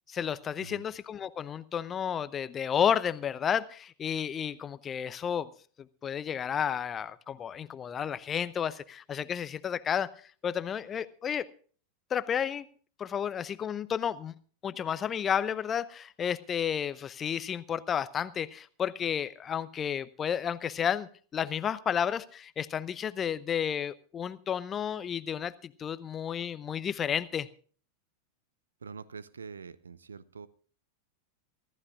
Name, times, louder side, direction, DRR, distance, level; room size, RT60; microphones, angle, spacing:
voice 1, 0.1-5.5 5.8-10.1 10.4-11.5 12.1-12.7 13.0-14.3 14.6-27.5, left 8 dB, 25° left, 16 dB, 0.7 m, -32 dB
voice 2, 28.8-30.5, right 5 dB, 70° right, 20 dB, 0.6 m, -45 dB
25.0 x 14.0 x 2.4 m, 0.43 s
figure-of-eight pair, 90°, 0 cm